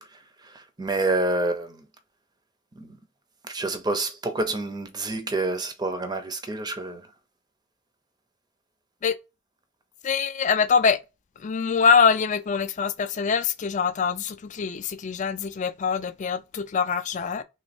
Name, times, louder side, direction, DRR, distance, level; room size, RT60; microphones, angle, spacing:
voice 1, 0.0-1.8 2.8-3.0 3.4-7.1, right 2 dB, 20° right, 0.6 m, -28 dB
voice 2, 10.0-11.0 11.4-17.4, left 6 dB, 35° left, 0.3 m, -24 dB
3.2 x 3.1 x 4.1 m
head